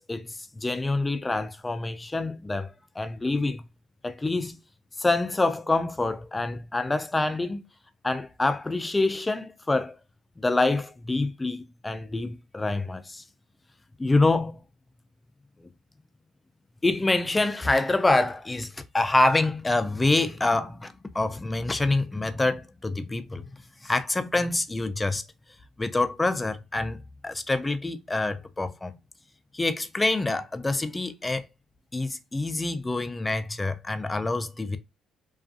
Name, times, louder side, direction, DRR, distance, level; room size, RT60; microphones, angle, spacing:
voice 1, 0.0-3.6 4.0-4.6 5.0-7.6 8.0-9.9 10.4-13.2 14.0-14.6 15.6-15.7 16.8-18.7 18.9-23.5 23.8-25.2 25.8-28.9 29.5-31.4 31.9-34.8, left 2 dB, 20° left, 0.4 m, -26 dB
2.5 x 2.3 x 2.4 m
supercardioid pair, 75°, 0 cm